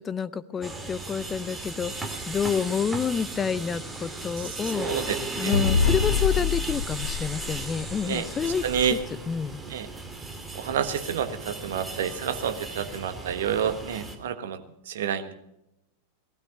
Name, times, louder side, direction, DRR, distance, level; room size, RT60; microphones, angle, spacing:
voice 1, 0.0-5.0 5.4-9.0 9.3-9.6, left 6 dB, 20° left, 16 dB, 0.7 m, -29 dB
sound 1, 0.6-14.2, right 2 dB, 10° right, 2.5 m, -36 dB
voice 2, 4.8-5.2 5.4-5.5 8.0-8.9 9.7-9.9 10.6-14.6 14.9-15.3, right 8 dB, 60° right, 9 dB, 1.4 m, -29 dB
sound 2, 5.5-8.2, left 6 dB, 70° left, 1.1 m, -25 dB
18.5 x 13.0 x 5.4 m, 0.83 s
figure-of-eight pair, 90°, 0 cm